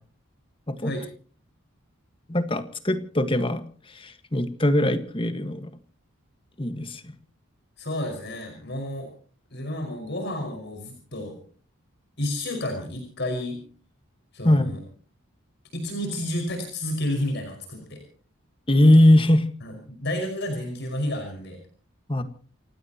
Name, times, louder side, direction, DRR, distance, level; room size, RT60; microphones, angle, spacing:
voice 1, 2.3-5.7 6.6-7.0 14.4-14.7 18.7-19.4 22.1-22.2, left 1 dB, 25° left, 9 dB, 1.6 m, -21 dB
voice 2, 7.8-9.1 9.5-11.4 12.2-13.6 14.3-14.8 15.7-18.0 19.6-21.6, left 1 dB, 55° left, 4 dB, 5.5 m, -31 dB
29.0 x 16.5 x 3.0 m, 0.41 s
head